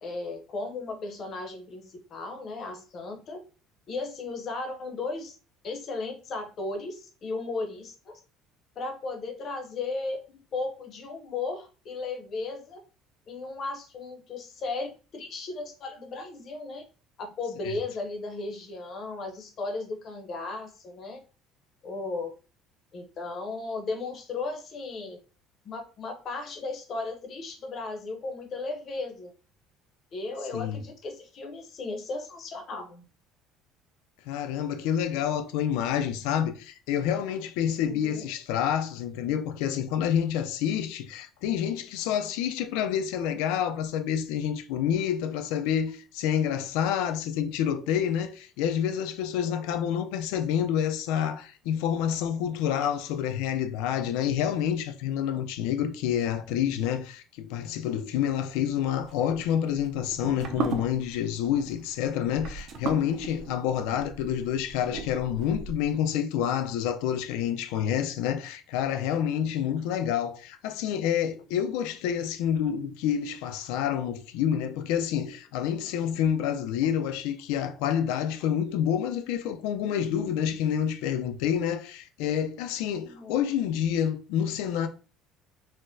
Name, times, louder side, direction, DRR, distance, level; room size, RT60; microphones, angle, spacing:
voice 1, 0.0-3.4 3.9-5.4 5.6-8.2 8.8-12.8 13.3-14.9 15.1-16.8 17.2-21.2 21.8-22.3 22.9-25.2 25.6-29.3 30.1-33.0 37.8-38.3 49.5-49.6 64.9-65.0 75.8-76.3 79.9-80.6 83.0-83.4, left 3 dB, 30° left, 0.6 m, -36 dB
voice 2, 34.3-84.9, left 9 dB, 80° left, 0.4 m, -28 dB
sound 1, 59.0-66.0, right 4 dB, 40° right, 0.4 m, -37 dB
4.1 x 2.0 x 2.6 m
cardioid pair, 180°, 0 cm